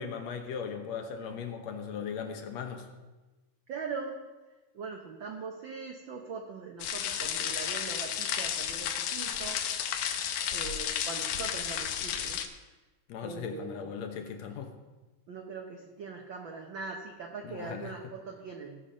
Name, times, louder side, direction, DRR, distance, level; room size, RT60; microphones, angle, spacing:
voice 1, 0.0-2.9 13.1-14.7 17.4-17.9, left 6 dB, 70° left, 5 dB, 2.0 m, -38 dB
voice 2, 3.7-4.2 4.7-9.6 10.5-12.4 13.2-13.9 15.3-18.8, right 5 dB, 90° right, 2 dB, 1.0 m, -41 dB
sound 1, 6.8-12.5, left 9 dB, 90° left, 2.3 m, -32 dB
17.0 x 5.8 x 5.1 m, 1.2 s
omnidirectional pair, 3.5 m